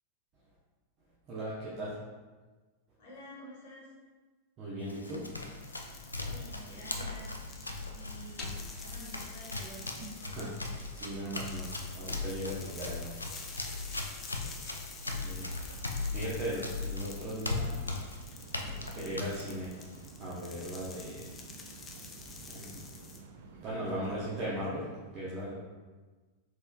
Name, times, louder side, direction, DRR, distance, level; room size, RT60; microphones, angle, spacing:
voice 1, 1.3-2.0 4.6-5.2 10.2-10.5 10.9-11.7 11.9-13.4 14.4-14.5 15.1-15.6 16.1-17.8 18.6-19.7 20.2-21.2 22.5-22.8 23.6-24.9 25.1-25.5, right 1 dB, 35° right, -8 dB, 0.8 m, -38 dB
voice 2, 3.0-3.9 5.8-7.3 7.7-8.5 8.8-10.1, equal, 50° left, -5 dB, 1.2 m, -50 dB
Run, 4.8-20.1, left 3 dB, 80° left, 0.4 m, -39 dB
sound 1, 5.6-23.2, left 4 dB, 20° left, 0.5 m, -49 dB
sound 2, 18.3-24.4, right 5 dB, 55° right, 0.3 m, -51 dB
4.1 x 3.8 x 2.3 m, 1.3 s
figure-of-eight pair, 90°, 0 cm